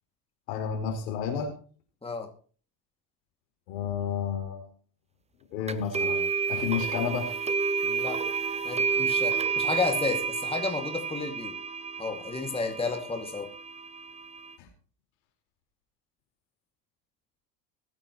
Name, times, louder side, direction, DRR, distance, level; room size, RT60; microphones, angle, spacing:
voice 1, 0.5-1.5 3.7-4.7 5.5-6.2 6.5-7.4 14.6-14.7, left 7 dB, 75° left, 2 dB, 4.6 m, -31 dB
sound 1, 5.7-14.5, right 6 dB, 15° right, 0.7 m, -30 dB
voice 2, 7.8-8.2 8.6-11.5 12.0-13.5, left 4 dB, 10° left, 3 dB, 2.4 m, -32 dB
22.5 x 8.9 x 3.1 m, 0.41 s
hypercardioid pair, 80°, 50 cm